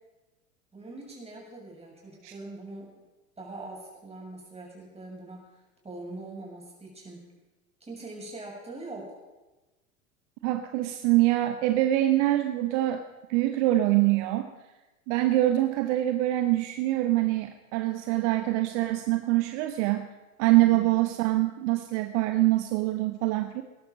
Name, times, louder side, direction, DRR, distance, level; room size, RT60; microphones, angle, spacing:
voice 1, 0.7-2.9 3.4-5.5 5.8-7.2 7.8-9.2 20.6-20.8, right 2 dB, 15° right, -2 dB, 6.7 m, -42 dB
voice 2, 10.4-13.0 13.3-14.5 15.1-20.1 20.4-23.6, right 16 dB, 55° right, 8 dB, 1.1 m, -24 dB
20.0 x 11.5 x 5.3 m, 1.1 s
hypercardioid pair, 95°, 42 cm